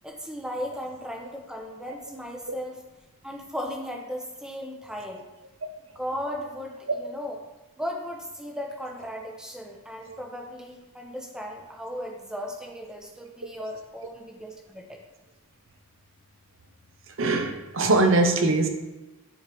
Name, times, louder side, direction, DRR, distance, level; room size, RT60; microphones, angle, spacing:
voice 1, 0.0-2.8 3.2-5.2 5.9-7.4 7.8-15.0, equal, 5° right, 0 dB, 0.8 m, -36 dB
voice 2, 17.2-18.7, right 2 dB, 60° right, 5 dB, 0.8 m, -22 dB
9.9 x 4.5 x 3.1 m, 1.1 s
head